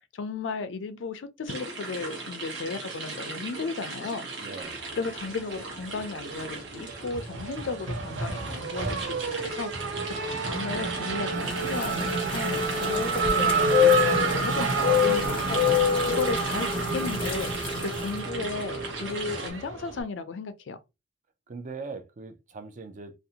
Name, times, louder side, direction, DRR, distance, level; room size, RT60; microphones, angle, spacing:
voice 1, 0.1-4.3 4.9-9.9 10.3-15.6 16.1-17.5 17.8-20.8, left 4 dB, 85° left, 0.4 m, -34 dB
sound 1, 1.5-19.5, right 3 dB, 70° right, 0.9 m, -38 dB
voice 2, 4.4-4.8 21.5-23.1, right 4 dB, 45° right, 0.4 m, -40 dB
Race car auto racing / Accelerating revving vroom, 5.0-6.0 6.3-20.0, right 4 dB, 90° right, 0.6 m, -29 dB
sound 2, 11.5-18.1, left 10 dB, 30° left, 0.5 m, -27 dB
2.6 x 2.0 x 2.7 m
head